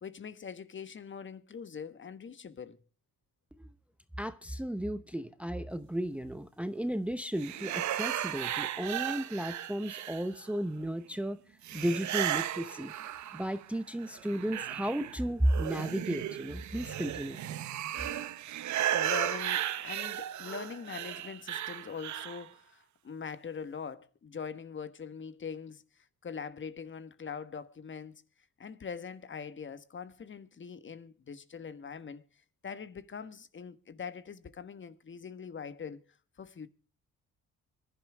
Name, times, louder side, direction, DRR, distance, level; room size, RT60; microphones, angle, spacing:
voice 1, 0.0-2.8 18.9-25.8 26.2-28.2 28.6-32.2 32.6-36.0 36.4-36.7, left 6 dB, 40° left, 1.4 m, -42 dB
voice 2, 4.2-11.4 11.7-12.9 13.3-17.4, right 1 dB, 5° right, 0.8 m, -34 dB
sound 1, 7.4-10.6 11.6-13.7 14.0-22.5, right 11 dB, 70° right, 1.1 m, -35 dB
25.0 x 11.0 x 3.5 m
cardioid pair, 90°, 30 cm